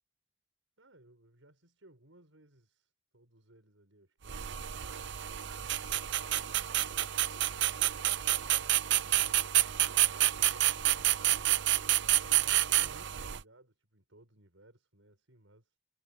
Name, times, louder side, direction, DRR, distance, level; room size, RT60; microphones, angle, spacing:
voice 1, 0.8-4.6 12.3-15.8, right 1 dB, 85° right, 6.1 m, -62 dB
sound 1, 4.3-13.4, right 14 dB, 65° right, 0.7 m, -29 dB
head